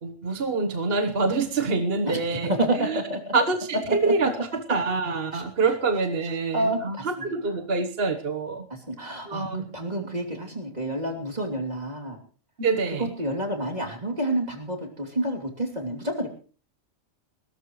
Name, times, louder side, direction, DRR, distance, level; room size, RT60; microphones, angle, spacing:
voice 1, 0.0-2.5 2.8-3.0 3.3-8.7 9.2-9.7 12.6-13.1, right 4 dB, 50° right, 7 dB, 1.4 m, -26 dB
voice 2, 2.5-3.3 5.3-5.4 6.5-7.0 8.7-12.2 13.0-16.3, right 1 dB, 30° right, 0 dB, 3.2 m, -29 dB
21.0 x 17.5 x 3.2 m, 0.39 s
omnidirectional pair, 1.4 m